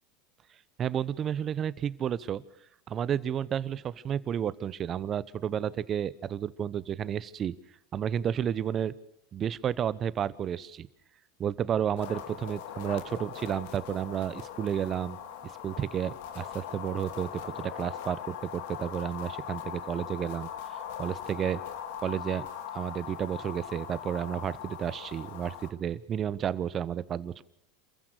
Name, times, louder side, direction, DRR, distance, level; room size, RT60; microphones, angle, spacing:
voice 1, 0.8-2.4 2.9-7.5 7.9-8.9 9.3-10.9 11.4-15.2 15.4-20.5 21.0-21.6 22.0-22.5 22.7-27.4, right 9 dB, 35° right, 19 dB, 1.0 m, -31 dB
sound 1, 12.0-25.7, left 9 dB, 70° left, 2.6 m, -40 dB
27.5 x 15.0 x 6.6 m, 0.76 s
hypercardioid pair, 105°, 0 cm